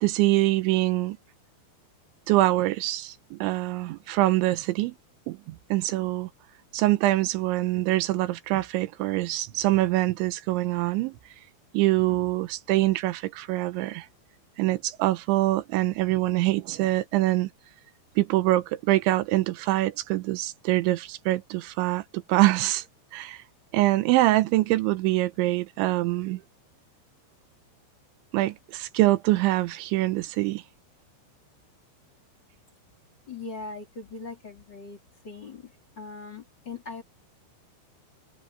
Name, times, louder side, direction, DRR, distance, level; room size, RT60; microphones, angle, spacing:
voice 1, 0.0-1.2 2.3-5.0 5.3-6.3 6.7-11.2 11.7-14.1 14.6-17.5 18.2-22.8 23.1-23.4 23.7-26.4 28.3-30.6, right 17 dB, 85° right, 3.2 m, -24 dB
voice 2, 33.3-35.0 35.2-37.0, left 4 dB, 25° left, 3.7 m, -40 dB
open air
omnidirectional pair, 5.4 m